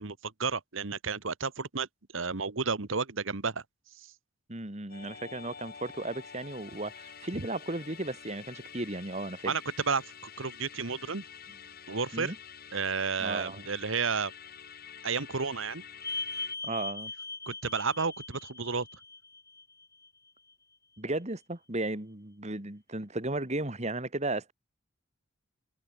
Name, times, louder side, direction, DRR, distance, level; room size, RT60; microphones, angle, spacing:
voice 1, 0.0-1.9 2.1-3.6 4.0-4.1 9.5-9.6 9.9-11.2 11.9-12.3 12.7-14.3 15.0-15.8 17.5-18.9, right 5 dB, 70° right, 1.3 m, -32 dB
voice 2, 4.5-9.5 12.1-12.4 13.2-13.7 16.6-17.1 21.0-24.5, right 2 dB, 35° right, 2.2 m, -35 dB
Musical instrument, 4.9-16.6, left 7 dB, 45° left, 5.3 m, -48 dB
sound 1, 16.0-20.1 20.5-20.6 23.5-23.6, left 3 dB, 15° left, 4.6 m, -40 dB
head